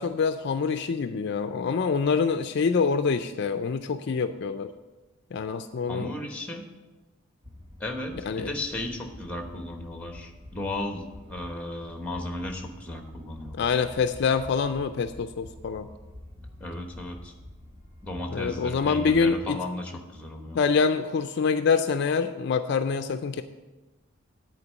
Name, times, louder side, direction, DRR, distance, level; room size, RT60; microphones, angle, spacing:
voice 1, 0.0-4.7 5.3-6.1 8.2-8.5 13.5-15.9 18.3-19.6 20.5-23.4, left 5 dB, 55° left, 9 dB, 0.4 m, -25 dB
voice 2, 5.9-6.6 7.8-11.0 11.3-13.8 16.6-17.3 18.0-20.6, left 1 dB, 5° left, 3 dB, 1.1 m, -35 dB
sound 1, 7.4-19.5, left 1 dB, 25° right, 1.2 m, -47 dB
9.7 x 4.5 x 7.3 m, 1.2 s
head